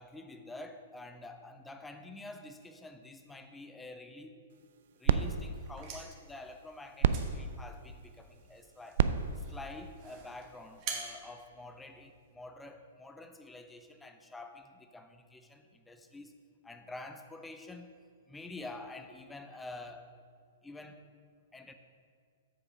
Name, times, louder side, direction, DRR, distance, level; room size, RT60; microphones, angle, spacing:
voice 1, 0.0-4.4 5.0-9.0 9.4-16.4 16.6-17.9 18.3-20.2 20.6-21.1 21.5-21.7, left 2 dB, 10° left, 6 dB, 0.6 m, -48 dB
sound 1, 4.5-10.9, right 8 dB, 60° right, 0.3 m, -34 dB
sound 2, 5.6-12.3, right 5 dB, 40° right, 1.2 m, -47 dB
7.4 x 4.9 x 4.8 m, 2.2 s
hypercardioid pair, 120°, 0 cm